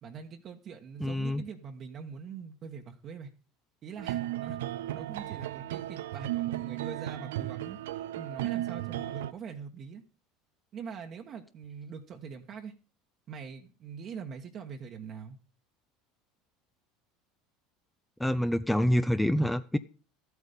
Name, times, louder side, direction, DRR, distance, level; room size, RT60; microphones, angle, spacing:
voice 1, 0.0-3.3 3.8-4.6 4.9-7.8 8.2-10.0 10.7-12.7 13.3-15.4, right 6 dB, 45° right, 1.3 m, -43 dB
voice 2, 1.0-1.4 18.2-19.8, equal, 5° left, 0.6 m, -26 dB
sound 1, 4.0-9.3, right 14 dB, 80° right, 0.5 m, -35 dB
12.5 x 8.3 x 5.2 m
hypercardioid pair, 85°, 0 cm